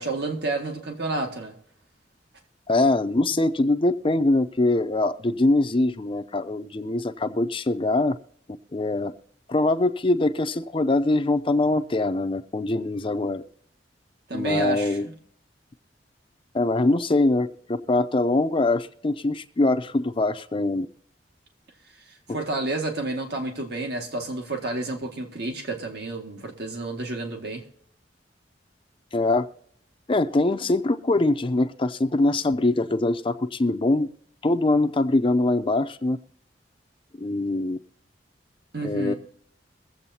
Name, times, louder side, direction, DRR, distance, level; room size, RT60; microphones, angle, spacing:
voice 1, 0.0-1.6 14.3-15.0 22.3-27.6 38.7-39.1, right 2 dB, 65° right, 1.8 m, -30 dB
voice 2, 2.7-8.2 8.7-9.1 9.5-13.4 14.3-15.1 16.5-20.9 22.3-22.4 29.1-29.5 30.1-34.1 34.4-36.2 37.2-37.8 38.8-39.1, left 2 dB, 30° left, 0.5 m, -23 dB
23.0 x 7.9 x 2.8 m
head